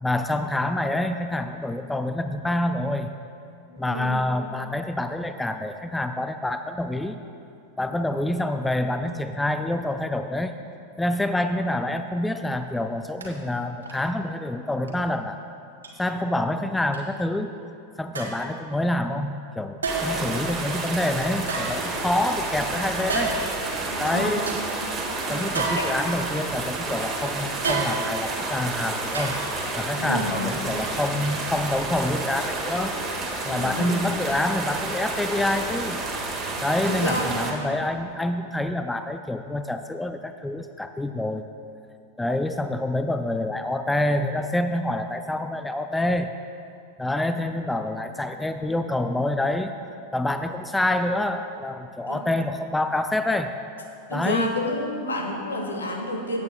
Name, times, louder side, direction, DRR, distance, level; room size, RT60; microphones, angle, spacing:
voice 1, 0.0-3.1 3.8-7.2 7.8-10.5 11.0-15.4 16.0-17.6 18.0-23.3 24.0-24.5 25.3-29.4 29.8-33.0 33.4-36.0 36.6-41.4 42.2-46.3 47.0-49.7 50.1-53.5 54.1-54.5, left 1 dB, 5° left, 8 dB, 0.3 m, -27 dB
voice 2, 3.7-4.2 23.9-24.5 25.7-25.9 29.9-30.6 33.5-34.0 36.8-37.3 52.1-52.2 54.1-56.4, left 1 dB, 75° left, 2 dB, 1.2 m, -29 dB
sound 1, 13.2-13.3 13.8-14.1 14.8-14.9 15.8-15.9 16.9-17.0 18.1-18.5 19.8-20.3 21.4-22.3 23.1-23.6 24.0-24.1 24.5-24.6 25.5-26.4 27.6-28.3 29.1-29.7 30.1-30.2, right 3 dB, 75° right, 1.5 m, -30 dB
sound 2, 19.9-37.5, right 3 dB, 20° right, 1.5 m, -30 dB
16.5 x 8.6 x 2.2 m, 2.5 s
figure-of-eight pair, 90°, 0 cm